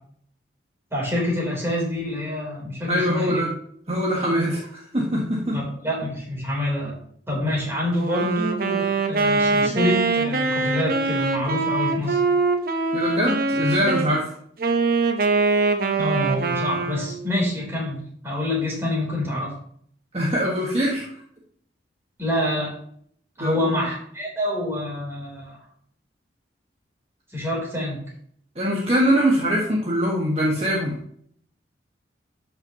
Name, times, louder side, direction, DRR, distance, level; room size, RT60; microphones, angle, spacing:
voice 1, 0.9-3.4 5.5-7.0 7.3-12.2 16.0-19.6 22.2-22.8 23.4-25.6 27.3-28.0, left 1 dB, 15° right, -4 dB, 3.5 m, -26 dB
voice 2, 2.9-3.5 3.9-5.6 12.9-14.3 20.1-21.1 23.4-23.8 28.5-31.0, equal, 35° right, -3 dB, 1.5 m, -23 dB
Wind instrument woodwind instrument, 7.9-14.1 14.6-17.2, right 3 dB, 50° right, 1.0 m, -23 dB
12.5 x 5.9 x 2.9 m, 0.62 s
head